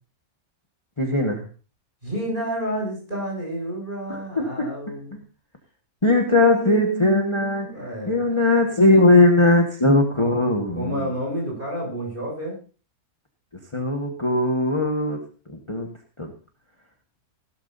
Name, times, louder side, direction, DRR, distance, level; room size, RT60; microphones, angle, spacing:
voice 1, 1.0-1.4 4.1-4.7 6.0-7.7 8.1-11.0 13.7-15.2 15.5-15.9 16.2-16.3, left 2 dB, 20° left, 2 dB, 1.4 m, -19 dB
voice 2, 2.0-5.2 6.3-8.2 8.9-9.0 10.7-12.6, equal, 35° right, -1 dB, 7.8 m, -30 dB
16.0 x 13.0 x 2.7 m, 0.35 s
omnidirectional pair, 1.5 m